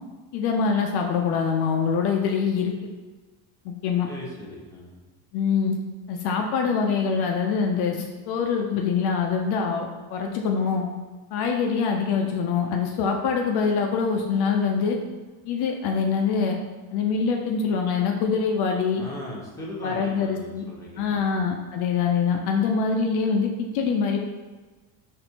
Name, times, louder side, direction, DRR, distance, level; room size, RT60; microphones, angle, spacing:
voice 1, 0.3-2.7 3.6-4.1 5.3-5.7 6.1-10.9 11.3-15.0 15.5-16.6 16.9-19.0 19.8-20.6 21.0-24.2, left 5 dB, 65° left, 2 dB, 0.6 m, -24 dB
voice 2, 4.0-5.0 18.9-21.3, left 1 dB, 5° left, -5 dB, 0.9 m, -39 dB
4.2 x 2.6 x 2.8 m, 1.3 s
cardioid pair, 120°, 43 cm